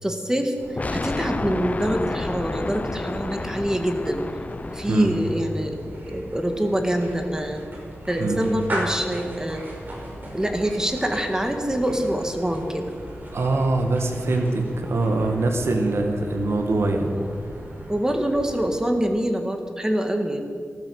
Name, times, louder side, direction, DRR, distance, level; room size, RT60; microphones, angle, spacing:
voice 1, 0.0-4.2 4.7-7.6 8.1-9.7 10.3-12.9 17.0-17.3 17.9-20.5, equal, 15° right, 5 dB, 1.9 m, -25 dB
sound 1, 0.6-19.2, equal, 45° right, 5.0 m, -38 dB
sound 2, 0.8-5.6, left 3 dB, 35° left, 0.6 m, -31 dB
voice 2, 13.3-17.1, right 2 dB, 70° right, 4 dB, 2.0 m, -23 dB
14.5 x 13.0 x 6.6 m, 2.1 s
wide cardioid pair, 70°, 4 cm